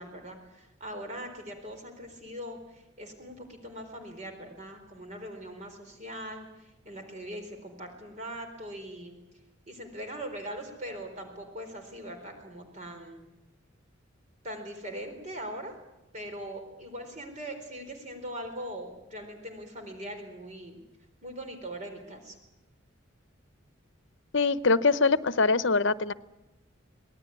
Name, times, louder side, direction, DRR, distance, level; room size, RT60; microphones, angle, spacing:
voice 1, 0.0-9.2 9.7-13.3 14.4-15.7 16.1-20.8 21.2-22.4, right 1 dB, 35° right, 5 dB, 4.2 m, -41 dB
voice 2, 24.3-26.1, left 4 dB, 65° left, 15 dB, 0.8 m, -23 dB
25.5 x 19.0 x 9.6 m, 0.97 s
head